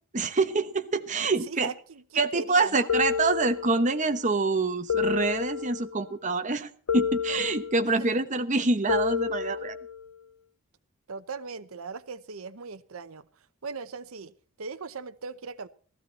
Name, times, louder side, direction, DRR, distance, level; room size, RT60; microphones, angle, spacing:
voice 1, 0.1-1.7 2.2-9.8, right 3 dB, 35° right, 1.1 m, -26 dB
voice 2, 1.1-2.9 7.9-8.2 11.1-13.2 13.6-15.7, right 4 dB, 80° right, 0.8 m, -39 dB
sound 1, 2.9-4.1 4.9-6.1 6.9-8.1 8.9-10.1, left 7 dB, 80° left, 0.7 m, -30 dB
16.0 x 14.5 x 4.2 m
head